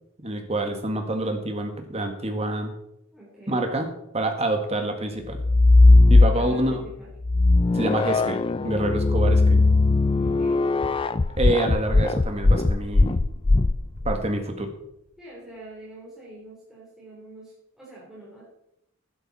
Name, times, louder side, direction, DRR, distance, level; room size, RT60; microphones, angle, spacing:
voice 1, 0.2-2.7 3.5-3.9 4.1-5.4 6.1-6.8 7.7-9.7 11.4-13.2 14.1-14.7, right 1 dB, 30° right, 5 dB, 1.7 m, -27 dB
voice 2, 3.1-3.7 6.2-7.1 10.2-10.7 15.2-18.4, right 1 dB, ahead, -7 dB, 3.6 m, -45 dB
sound 1, 5.3-6.7 7.2-14.2, left 2 dB, 25° left, 0.4 m, -18 dB
sound 2, 8.9-13.1 13.5-14.3, equal, 55° left, 2.1 m, -41 dB
12.0 x 10.5 x 4.2 m, 0.81 s
head